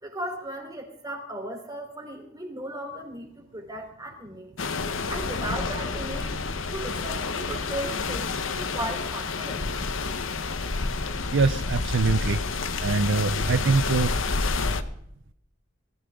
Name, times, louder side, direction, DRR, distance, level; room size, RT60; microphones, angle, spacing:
voice 1, 0.0-4.5 5.1-6.4 6.7-9.6, right 1 dB, 20° right, 2 dB, 3.5 m, -36 dB
sound 1, 4.6-14.8, left 4 dB, 80° left, 1.0 m, -29 dB
voice 2, 11.3-12.4 12.8-14.1, right 4 dB, 65° right, 11 dB, 0.6 m, -23 dB
20.5 x 14.0 x 3.7 m, 0.71 s
head